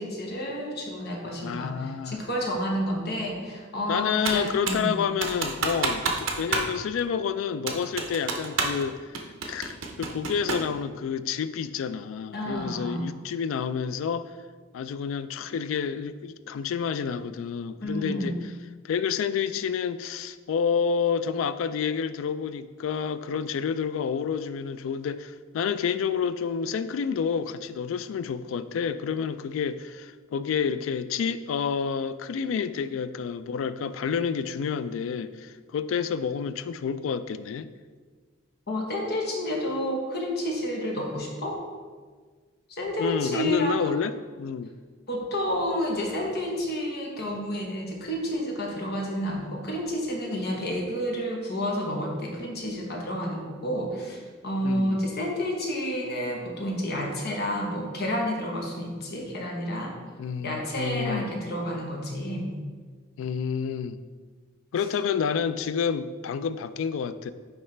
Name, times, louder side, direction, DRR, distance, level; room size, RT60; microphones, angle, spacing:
voice 1, 0.0-5.0 12.3-13.0 17.8-18.4 38.7-41.6 42.7-43.9 45.1-59.9 60.4-62.5, equal, 55° left, 0 dB, 1.1 m, -30 dB
voice 2, 1.4-2.2 3.9-9.2 9.4-14.3 14.7-18.3 18.8-37.7 43.0-44.1 44.4-44.7 54.6-55.0 60.2-61.3 63.2-64.0 64.7-67.3, left 6 dB, 75° left, 14 dB, 0.3 m, -29 dB
Computer keyboard, 4.2-4.9 5.2-6.7 7.0-7.1 7.7-8.8 9.1-10.7, right 4 dB, 80° right, 0.7 m, -29 dB
9.4 x 3.2 x 3.2 m, 1.5 s
head